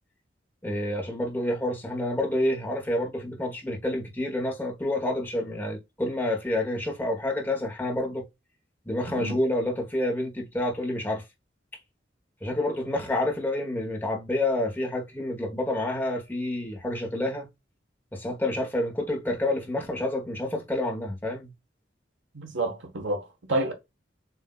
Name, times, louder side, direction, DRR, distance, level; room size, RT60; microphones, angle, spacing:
voice 1, 0.6-8.2 8.9-11.2 12.4-17.5 18.1-21.5, left 1 dB, 10° left, 1.2 m, -28 dB
voice 2, 22.3-23.7, right 2 dB, 85° right, 1.3 m, -29 dB
7.2 x 2.7 x 2.4 m
head